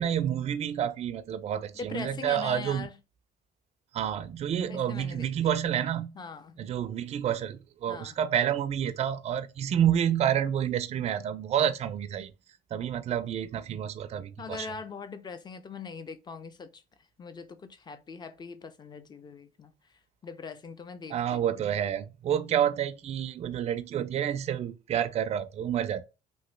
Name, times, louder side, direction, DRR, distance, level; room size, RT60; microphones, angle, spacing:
voice 1, 0.0-2.9 3.9-6.1 6.6-12.3 12.7-14.7 21.1-26.0, right 9 dB, 40° right, 0.4 m, -29 dB
voice 2, 1.7-3.0 4.7-5.5 6.1-6.6 7.9-8.1 14.4-16.8 17.2-19.7 20.2-21.7, left 5 dB, 25° left, 0.4 m, -42 dB
3.0 x 2.6 x 3.1 m
cardioid pair, 110°, 17 cm